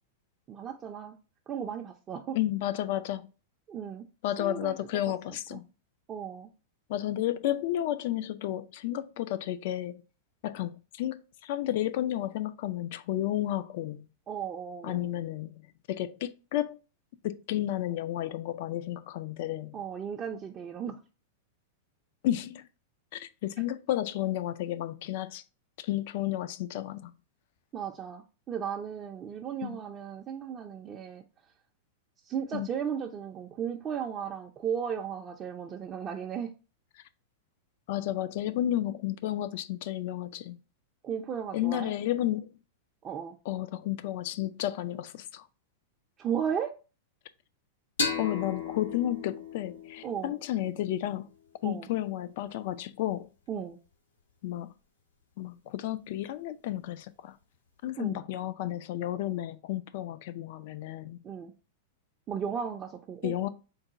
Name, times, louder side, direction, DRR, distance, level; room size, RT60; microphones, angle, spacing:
voice 1, 0.5-1.1 1.5-2.4 3.7-4.0 4.4-5.1 5.5-5.6 6.1-6.5 14.3-15.1 19.7-21.0 27.7-31.2 32.3-36.5 41.0-41.9 43.0-43.4 46.2-46.8 50.0-50.3 51.6-51.9 53.5-53.8 58.0-58.2 61.2-61.5 62.3-63.3, right 8 dB, 30° right, 0.4 m, -35 dB
voice 2, 2.3-3.3 4.2-5.7 6.9-10.0 10.4-10.7 11.0-14.0 14.8-15.5 15.9-16.8 17.2-19.8 22.2-22.6 23.1-25.4 25.8-27.1 29.6-29.8 32.5-32.7 37.9-40.6 41.5-42.5 43.5-45.4 48.2-51.3 51.6-53.3 54.4-54.7 55.4-57.3 57.8-61.2 63.2-63.5, left 13 dB, 55° left, 0.3 m, -32 dB
sound 1, 48.0-51.4, left 5 dB, 80° left, 1.0 m, -35 dB
3.9 x 2.2 x 3.6 m
hypercardioid pair, 100°, 0 cm